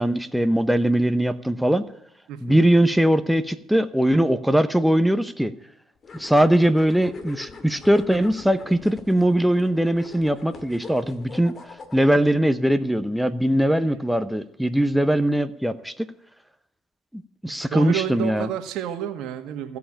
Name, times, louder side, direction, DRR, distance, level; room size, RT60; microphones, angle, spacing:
voice 1, 0.0-1.9 2.4-5.5 6.1-11.5 11.9-16.1 17.1-18.5, right 1 dB, ahead, 10 dB, 0.8 m, -21 dB
voice 2, 2.3-2.6 17.5-19.8, right 10 dB, 70° right, 8 dB, 1.6 m, -30 dB
sound 1, 6.0-12.3, left 4 dB, 40° left, 2.1 m, -42 dB
15.5 x 5.7 x 10.0 m, 0.76 s
supercardioid pair, 70°, 0 cm